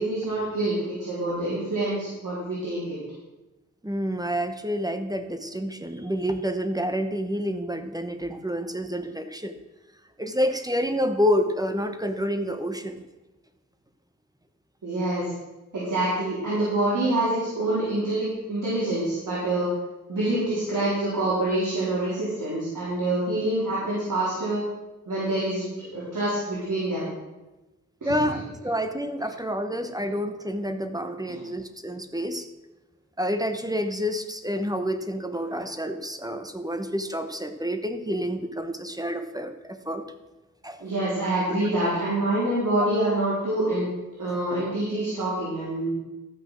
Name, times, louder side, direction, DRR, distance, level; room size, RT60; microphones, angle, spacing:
voice 1, 0.0-3.0 14.8-15.3 15.7-19.7 20.1-24.6 25.1-27.1 28.0-28.1 31.3-31.4 35.5-35.6 40.8-43.8 44.2-45.9, right 1 dB, 75° right, -9 dB, 4.0 m, -26 dB
voice 2, 3.8-9.5 10.2-13.0 28.0-32.5 33.2-40.0 40.6-40.9, equal, 10° right, 8 dB, 1.0 m, -28 dB
13.0 x 6.3 x 6.3 m, 1.1 s
wide cardioid pair, 70°, 32 cm